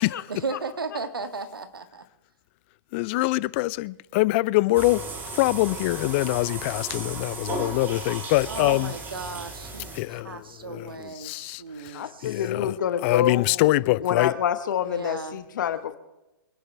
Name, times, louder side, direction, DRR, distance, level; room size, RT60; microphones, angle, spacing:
voice 1, 0.3-2.0 8.4-12.5 14.9-15.4, right 4 dB, 85° right, 1.6 m, -35 dB
voice 2, 2.9-5.0 5.3-8.9 9.9-12.8 13.0-14.3, left 20 dB, 35° left, 0.4 m, -24 dB
sound 1, 4.7-10.3, right 3 dB, 15° right, 2.1 m, -35 dB
voice 3, 11.9-16.0, left 9 dB, 60° left, 1.2 m, -28 dB
25.0 x 11.0 x 3.4 m
hypercardioid pair, 130°, 12 cm